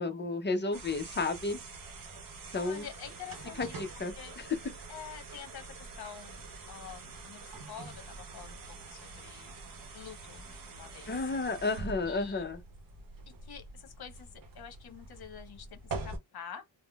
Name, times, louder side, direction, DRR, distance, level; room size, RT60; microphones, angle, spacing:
voice 1, 0.0-1.6 2.5-2.9 3.6-4.5 11.1-12.6, left 3 dB, 25° left, 0.5 m, -32 dB
sound 1, 0.7-16.2, right 3 dB, 45° right, 0.8 m, -45 dB
voice 2, 2.5-3.8 4.2-4.4 4.9-9.6 9.9-11.3 12.0-12.5 13.4-16.6, left 8 dB, 55° left, 1.0 m, -48 dB
3.5 x 2.0 x 2.3 m
wide cardioid pair, 135°, 46 cm